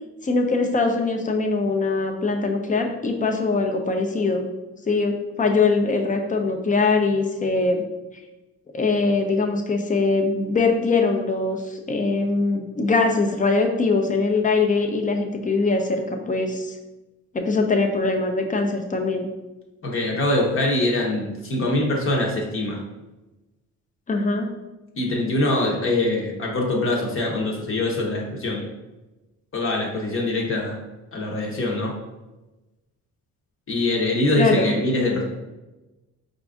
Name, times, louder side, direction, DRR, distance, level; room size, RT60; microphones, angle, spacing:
voice 1, 0.2-4.5 4.9-7.8 8.7-16.0 16.3-16.7 17.3-19.3 24.1-24.5 34.4-34.7, left 3 dB, 25° left, 3 dB, 0.6 m, -22 dB
voice 2, 19.8-22.8 25.0-28.6 29.5-30.8 31.1-31.9 33.7-35.2, left 2 dB, 45° left, -1 dB, 1.0 m, -23 dB
4.7 x 2.6 x 3.5 m, 1.1 s
cardioid pair, 90°, 30 cm